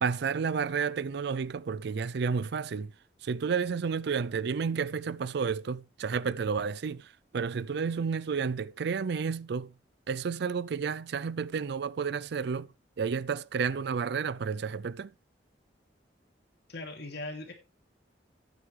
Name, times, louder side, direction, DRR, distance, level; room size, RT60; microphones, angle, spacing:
voice 1, 0.0-2.9 3.2-9.7 10.1-12.7 13.0-15.1, right 6 dB, 65° right, 0.4 m, -31 dB
voice 2, 16.7-17.5, left 2 dB, 65° left, 2.7 m, -39 dB
11.5 x 9.1 x 3.3 m
head